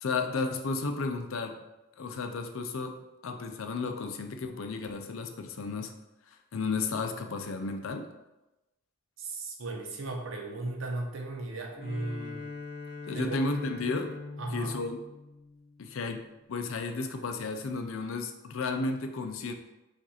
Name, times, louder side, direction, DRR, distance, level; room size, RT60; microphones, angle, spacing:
voice 1, 0.0-1.6 2.0-5.9 6.3-8.1 13.1-14.1 14.5-15.0 15.8-16.2 16.5-19.6, left 3 dB, 75° left, 6 dB, 0.5 m, -33 dB
voice 2, 9.2-12.5 13.1-13.4 14.4-14.8, right 2 dB, 70° right, 2 dB, 0.8 m, -36 dB
Bowed string instrument, 11.7-16.0, left 3 dB, 40° left, 0.9 m, -42 dB
4.9 x 2.6 x 4.1 m, 0.99 s
head